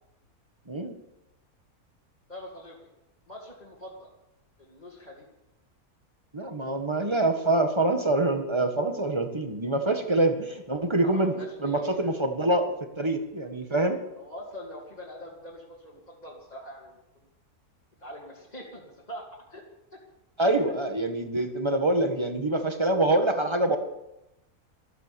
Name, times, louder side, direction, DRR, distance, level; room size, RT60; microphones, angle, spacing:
voice 1, 0.7-1.0 6.3-14.0 20.4-23.8, right 2 dB, 20° right, 6 dB, 1.6 m, -25 dB
voice 2, 2.3-2.9 3.3-4.1 4.6-5.2 11.0-12.2 14.2-17.3 18.0-19.7 19.9-20.0 20.7-20.8, equal, 25° left, -5 dB, 2.8 m, -44 dB
14.0 x 13.0 x 7.0 m, 0.90 s
omnidirectional pair, 1.6 m